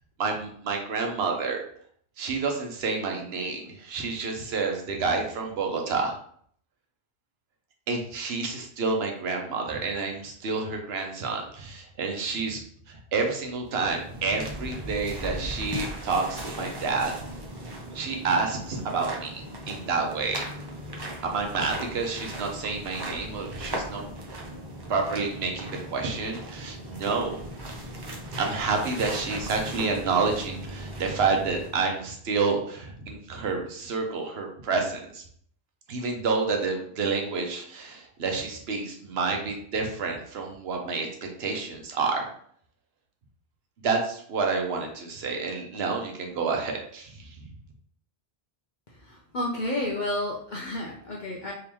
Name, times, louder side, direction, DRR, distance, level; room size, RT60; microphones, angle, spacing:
voice 1, 0.2-1.6 2.2-6.2 7.9-17.3 17.9-20.5 21.2-24.0 24.4-24.5 24.9-27.4 28.4-35.2 35.9-42.3 43.8-47.4, right 4 dB, 70° right, 2 dB, 1.0 m, -29 dB
sound 1, 13.7-31.9, right 1 dB, 30° right, 0.5 m, -38 dB
voice 2, 48.9-51.5, left 1 dB, 55° left, -2 dB, 0.6 m, -31 dB
3.5 x 2.9 x 3.0 m, 0.62 s
omnidirectional pair, 1.1 m